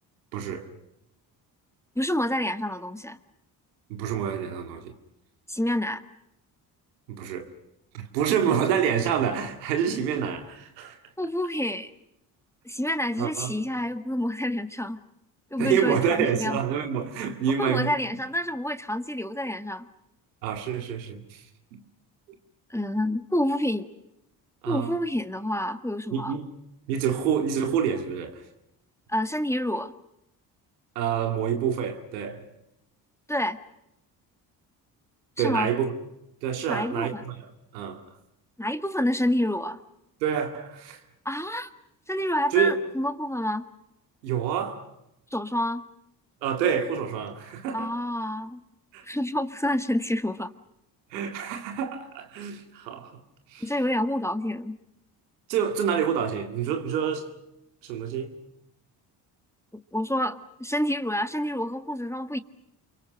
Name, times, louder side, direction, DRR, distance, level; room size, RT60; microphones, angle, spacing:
voice 1, 0.3-0.7 3.9-4.9 7.1-7.5 7.9-11.0 13.2-13.5 15.6-17.9 20.4-21.5 21.7-21.8 24.6-24.9 26.1-26.5 26.9-28.4 31.0-32.4 35.4-35.9 36.4-37.3 37.7-38.0 40.2-41.0 42.5-42.7 44.2-44.9 46.4-47.9 48.9-49.1 51.1-53.2 53.5-53.6 55.5-57.3 57.8-58.3, right 8 dB, 90° right, 2.2 m, -27 dB
voice 2, 1.9-3.2 5.5-6.0 11.2-11.9 12.6-15.0 15.5-16.6 17.6-19.9 22.7-23.9 24.7-26.4 29.1-29.9 33.3-33.6 35.4-35.7 36.7-37.2 38.6-39.8 41.2-41.7 42.1-43.7 45.3-45.8 47.7-48.6 49.0-50.5 53.6-54.8 59.9-62.4, left 1 dB, 5° left, 1.7 m, -28 dB
29.0 x 23.5 x 6.6 m
hypercardioid pair, 50°, 49 cm